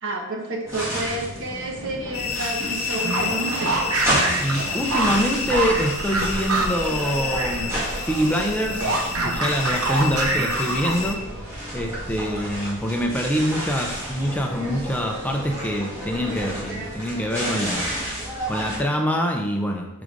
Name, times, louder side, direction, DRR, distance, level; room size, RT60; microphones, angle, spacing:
voice 1, 0.0-3.7, right 1 dB, 60° right, -1 dB, 1.2 m, -30 dB
sound 1, 0.6-18.8, right 1 dB, 15° right, 1.8 m, -31 dB
sound 2, 2.1-11.1, left 5 dB, 75° left, 0.7 m, -31 dB
sound 3, 2.9-7.6 7.9-11.2, right 3 dB, 80° right, 0.9 m, -26 dB
voice 2, 4.4-7.7 8.1-8.9 9.2-11.2 11.7-18.0 18.5-19.9, equal, 5° left, 1 dB, 0.4 m, -25 dB
4.8 x 3.9 x 5.0 m, 0.98 s
head